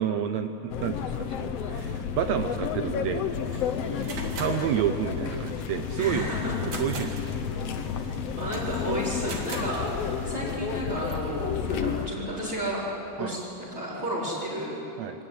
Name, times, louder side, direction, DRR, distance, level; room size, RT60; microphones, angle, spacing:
voice 1, 0.0-3.2 4.4-6.3 6.6-7.2 13.2-13.4 15.0-15.2, right 9 dB, 80° right, 8 dB, 1.5 m, -29 dB
sound 1, 0.7-12.1, left 7 dB, 65° left, 1.6 m, -31 dB
sound 2, 3.4-10.3, right 4 dB, 60° right, 3.5 m, -43 dB
voice 2, 3.8-4.3 6.0-6.5 8.4-12.8 13.2-14.8 15.2-15.3, equal, 35° right, -8 dB, 4.8 m, -32 dB
24.0 x 18.5 x 9.5 m, 2.8 s
omnidirectional pair, 4.1 m